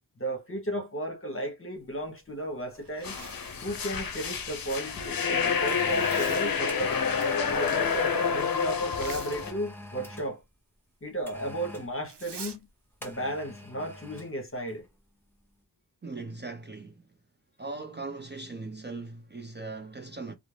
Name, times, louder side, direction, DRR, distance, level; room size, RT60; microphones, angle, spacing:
voice 1, 0.2-3.2 3.6-7.0 7.5-10.4 11.0-12.6 13.0-14.8, right 1 dB, 35° left, 1.0 m, -34 dB
sound 1, 1.9-2.1 2.8-3.0 3.3-4.5 5.2-8.1 9.3-10.4 11.3-12.0 13.0-14.4 14.7-14.9, equal, 5° left, 0.8 m, -45 dB
Zipper (clothing), 2.8-3.8 5.8-6.5 8.8-9.3 12.0-12.6, right 6 dB, 85° right, 0.6 m, -45 dB
sound 2, 3.0-9.5, left 6 dB, 60° left, 0.6 m, -28 dB
voice 2, 16.0-17.0 17.6-20.3, right 3 dB, 25° right, 0.5 m, -39 dB
2.5 x 2.0 x 3.1 m
wide cardioid pair, 55°, 40 cm